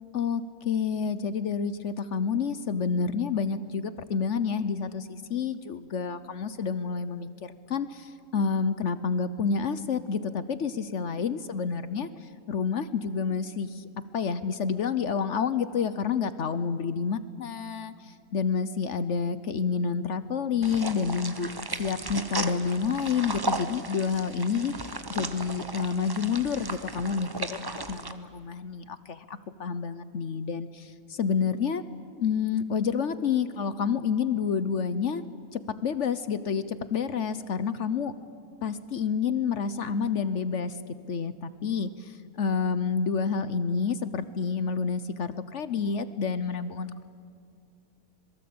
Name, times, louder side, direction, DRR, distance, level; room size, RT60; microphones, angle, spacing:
voice 1, 0.1-13.9 14.1-21.5 21.8-31.8 32.2-35.2 35.5-38.1 38.6-40.8 41.1-47.0, left 6 dB, 60° left, 13 dB, 1.1 m, -29 dB
sound 1, 20.6-28.1, right 2 dB, 20° right, 0.9 m, -35 dB
26.0 x 22.5 x 8.6 m, 2.2 s
omnidirectional pair, 1.5 m